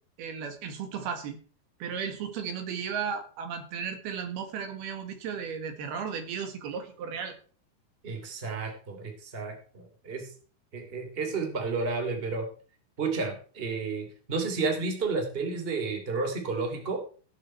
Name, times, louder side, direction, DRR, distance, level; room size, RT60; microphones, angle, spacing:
voice 1, 0.2-1.4 1.8-7.4, right 7 dB, 75° right, 6 dB, 3.7 m, -35 dB
voice 2, 8.0-10.3 10.7-12.5 13.0-17.0, right 4 dB, 15° right, 4 dB, 2.5 m, -31 dB
18.0 x 8.1 x 4.5 m, 0.41 s
omnidirectional pair, 4.6 m